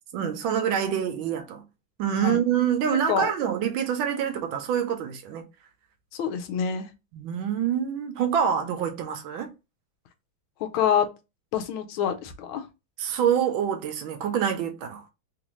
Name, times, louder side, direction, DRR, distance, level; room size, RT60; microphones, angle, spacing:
voice 1, 0.1-1.6 2.0-5.4 7.1-9.5 13.0-15.0, right 8 dB, 80° right, 1.4 m, -26 dB
voice 2, 6.1-6.9 10.6-11.1 11.5-12.7, left 8 dB, 85° left, 1.4 m, -26 dB
3.6 x 2.6 x 3.0 m
omnidirectional pair, 2.2 m